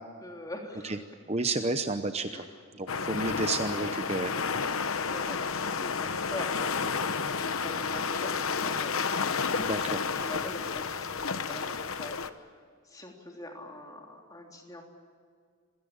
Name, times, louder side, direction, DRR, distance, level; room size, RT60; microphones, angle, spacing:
voice 1, 0.2-1.0 2.3-2.6 5.0-9.1 9.7-14.8, left 1 dB, 20° left, 1 dB, 3.6 m, -44 dB
voice 2, 1.3-2.3 2.8-4.3 9.5-10.0, right 3 dB, 30° right, 8 dB, 0.8 m, -31 dB
sound 1, 2.9-12.3, left 5 dB, 85° left, 1.0 m, -31 dB
26.5 x 17.0 x 8.9 m, 2.1 s
head